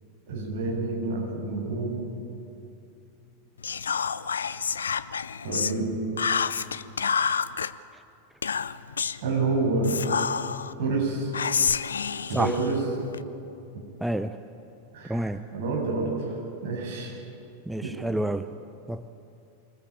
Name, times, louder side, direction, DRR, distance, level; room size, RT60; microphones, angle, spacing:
voice 1, 0.3-2.0 5.4-6.0 9.2-10.0 10.8-11.3 12.3-12.8 14.9-16.4 16.6-17.1 17.8-17.9, right 3 dB, 50° right, -1 dB, 7.7 m, -28 dB
Whispering, 3.6-5.8 6.2-7.7 8.4-9.2 9.8-10.7 11.3-13.2, left 6 dB, 70° left, 0.6 m, -28 dB
voice 2, 14.0-14.4 15.1-15.4 17.7-18.5 18.9-19.1, right 1 dB, 5° right, 10 dB, 0.6 m, -28 dB
25.5 x 20.0 x 8.8 m, 2.7 s
figure-of-eight pair, 90°, 0 cm